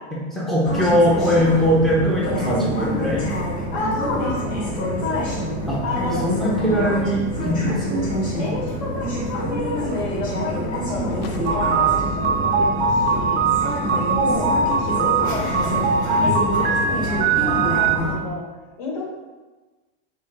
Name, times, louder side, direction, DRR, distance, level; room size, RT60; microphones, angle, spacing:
voice 1, 0.1-3.3 5.7-5.8 6.2-8.1 14.2-14.6, equal, ahead, -6 dB, 0.6 m, -21 dB
sound 1, 0.6-18.1, equal, 25° left, 1.2 m, -26 dB
voice 2, 3.7-5.4 5.8-6.3 8.4-13.4 13.9-18.4 18.8-19.1, left 3 dB, 45° left, -3 dB, 1.3 m, -30 dB
sound 2, 11.2-14.6, left 4 dB, 60° left, 0.5 m, -36 dB
sound 3, 11.5-18.0, right 5 dB, 45° right, 0.4 m, -21 dB
4.3 x 2.6 x 4.5 m, 1.2 s
supercardioid pair, 165°, 34 cm